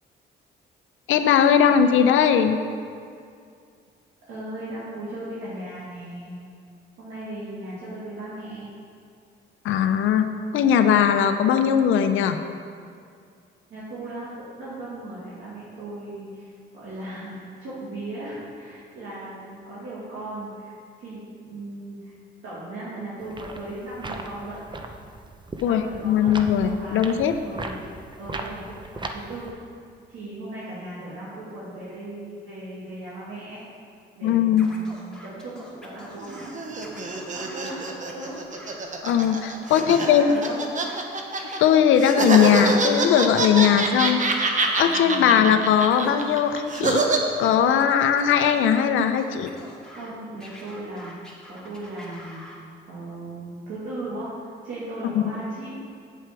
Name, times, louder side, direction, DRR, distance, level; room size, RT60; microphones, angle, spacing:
voice 1, 1.1-2.6 9.6-10.3 10.5-12.4 25.6-27.3 34.2-34.7 39.0-40.4 41.6-44.5 44.7-47.0 47.4-49.5 55.1-55.2, left 8 dB, 80° left, 8 dB, 0.6 m, -19 dB
voice 2, 4.3-6.4 7.0-8.7 13.7-22.1 22.4-24.6 25.7-26.3 26.6-27.1 27.4-27.8 28.2-28.6 28.9-29.5 30.1-33.6 34.1-38.3 39.7-40.7 43.6-43.9 44.8-45.6 49.9-52.4 52.9-54.3 54.6-55.8, right 1 dB, 80° right, -10 dB, 2.5 m, -37 dB
sound 1, 23.2-29.5, right 2 dB, 25° right, 0.7 m, -37 dB
Scratching (performance technique), 34.6-36.5 36.8-38.8 39.0-41.0 41.3-43.5 43.9-45.6 45.9-47.8 48.1-50.1 50.4-52.6, left 1 dB, 5° left, 2.3 m, -46 dB
sound 2, 36.2-41.6 42.0-47.2, right 3 dB, 40° right, 1.1 m, -25 dB
8.0 x 7.7 x 4.7 m, 2.3 s
cardioid pair, 90°, 20 cm